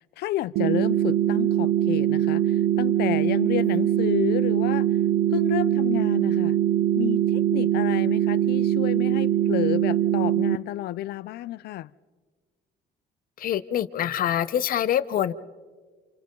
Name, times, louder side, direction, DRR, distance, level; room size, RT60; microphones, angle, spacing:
voice 1, 0.2-4.9 5.3-6.6 7.0-11.9, left 15 dB, 75° left, 0.6 m, -30 dB
sound 1, 0.6-10.6, right 11 dB, 85° right, 0.6 m, -22 dB
voice 2, 13.4-15.3, left 10 dB, 55° left, 0.9 m, -25 dB
29.0 x 28.0 x 3.9 m
cardioid pair, 110°, 17 cm